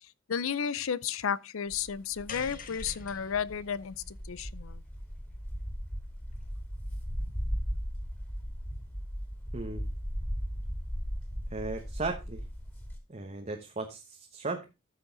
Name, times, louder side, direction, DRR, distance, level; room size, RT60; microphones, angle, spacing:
voice 1, 0.3-4.8, left 7 dB, 80° left, 0.6 m, -33 dB
sound 1, 1.7-13.0, equal, 10° left, 2.7 m, -37 dB
sound 2, 2.3-6.7, left 5 dB, 45° left, 1.3 m, -48 dB
voice 2, 9.5-9.8 11.5-12.4 13.1-14.7, right 3 dB, 35° right, 1.1 m, -36 dB
13.5 x 6.3 x 3.9 m
head